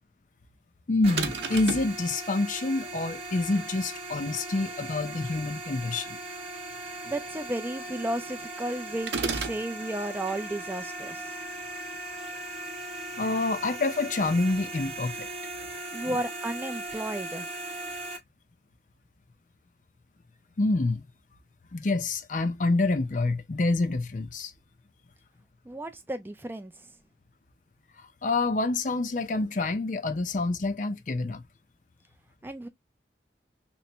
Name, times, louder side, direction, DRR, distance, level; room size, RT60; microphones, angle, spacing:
voice 1, 0.9-6.2 13.2-15.3 16.1-16.2 20.6-21.1 21.7-24.5 28.2-31.4, left 2 dB, 45° left, 0.5 m, -27 dB
sound 1, 1.0-18.2, right 2 dB, 35° right, 0.9 m, -38 dB
sound 2, 1.2-2.0 9.1-9.6, right 4 dB, 80° right, 0.7 m, -31 dB
voice 2, 7.0-11.2 15.9-17.5 25.7-26.7 32.4-32.7, right 1 dB, 10° right, 0.3 m, -33 dB
3.3 x 3.1 x 2.8 m
head